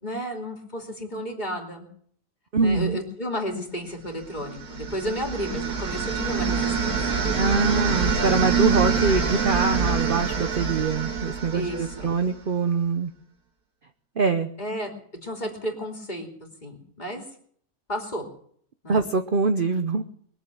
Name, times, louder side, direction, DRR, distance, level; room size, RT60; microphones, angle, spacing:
voice 1, 0.0-1.9 2.6-7.2 11.5-12.1 14.6-14.9 15.2-16.3 16.6-17.2 17.9-18.3 18.8-19.1, equal, 30° left, 1 dB, 3.0 m, -32 dB
voice 2, 2.5-3.0 7.3-13.1 14.2-14.5 18.9-20.0, right 4 dB, 45° right, 8 dB, 0.8 m, -24 dB
Shot Bearing, 4.4-12.4, right 5 dB, 75° right, 2.2 m, -26 dB
22.0 x 7.7 x 8.4 m, 0.62 s
omnidirectional pair, 1.6 m